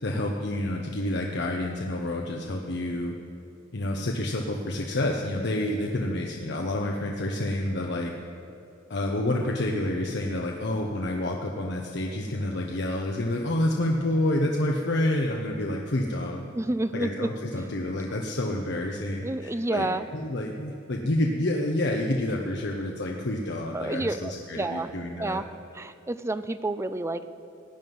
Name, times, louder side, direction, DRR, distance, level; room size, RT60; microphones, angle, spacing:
voice 1, 0.0-3.1 3.7-8.1 8.9-16.4 16.9-25.4, left 1 dB, 60° left, 1 dB, 0.9 m, -28 dB
voice 2, 16.5-17.3 19.2-20.1 23.7-24.9 25.2-25.5 25.7-27.3, right 2 dB, 15° right, 12 dB, 0.4 m, -29 dB
17.0 x 9.5 x 5.4 m, 2.7 s
head